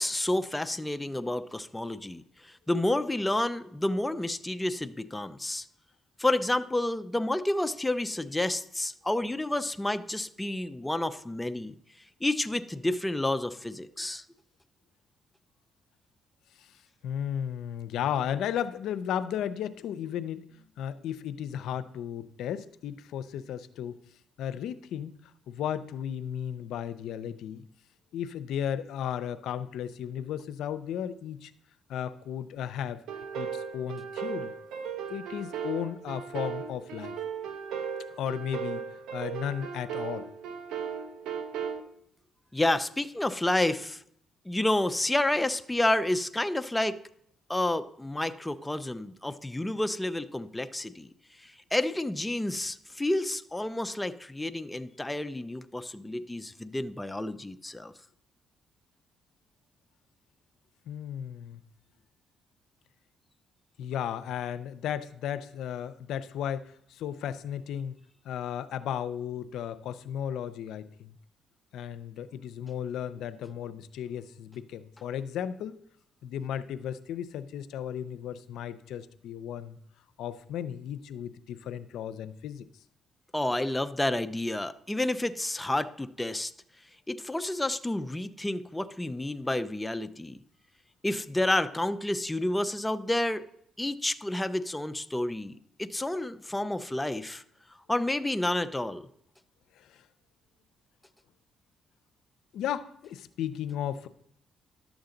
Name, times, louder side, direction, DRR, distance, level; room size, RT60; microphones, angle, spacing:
voice 1, 0.0-5.7 6.2-11.8 12.2-14.2 42.5-44.0 44.5-47.0 47.5-51.1 51.4-57.9 83.3-86.5 87.1-90.4 91.0-93.4 93.8-95.5 95.8-97.4 97.9-99.1, left 1 dB, 10° left, 10 dB, 0.5 m, -30 dB
voice 2, 17.0-24.0 24.4-25.1 25.5-27.6 28.1-31.5 31.9-33.0 33.4-34.5 35.1-37.2 38.2-38.8 39.1-40.3 60.9-61.6 63.8-68.0 68.2-71.1 71.7-75.7 76.2-79.8 80.2-82.6 99.8-100.0 102.5-104.1, left 9 dB, 80° left, 13 dB, 0.5 m, -35 dB
sound 1, 33.1-41.8, right 7 dB, 85° right, 0.8 m, -36 dB
11.5 x 7.1 x 3.8 m, 0.69 s
cardioid pair, 90°, 0 cm